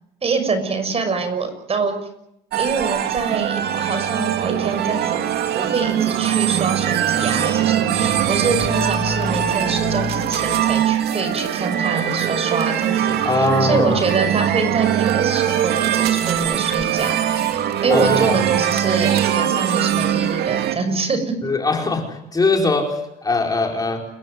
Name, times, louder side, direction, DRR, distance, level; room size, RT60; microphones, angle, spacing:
voice 1, 0.2-1.9 2.6-5.3 5.5-17.4 17.8-21.3, right 4 dB, 35° right, 9 dB, 6.2 m, -25 dB
sound 1, 2.5-20.8, right 10 dB, 75° right, 2.4 m, -21 dB
voice 2, 13.2-14.0 17.9-18.4 21.4-24.1, left 3 dB, 20° left, 2 dB, 5.0 m, -21 dB
29.5 x 15.5 x 9.7 m, 0.80 s
cardioid pair, 110°, 17 cm